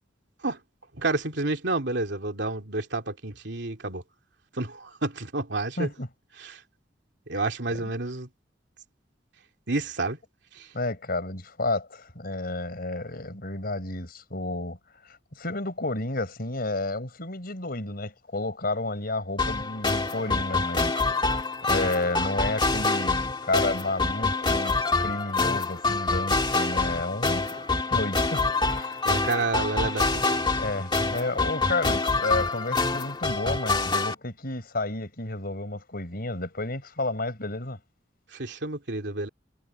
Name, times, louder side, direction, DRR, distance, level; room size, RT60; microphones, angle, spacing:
voice 1, 1.0-4.0 4.6-5.9 6.4-6.6 7.3-8.3 9.7-10.2 10.6-10.7 29.0-30.5 38.3-39.3, right 2 dB, 70° right, 3.1 m, -30 dB
voice 2, 5.8-6.1 7.7-7.8 10.7-14.8 15.0-21.0 21.3-24.7 25.0-27.6 27.9-29.0 30.5-37.8, left 2 dB, 55° left, 5.5 m, -31 dB
sound 1, 19.4-34.1, left 3 dB, 25° left, 2.0 m, -26 dB
head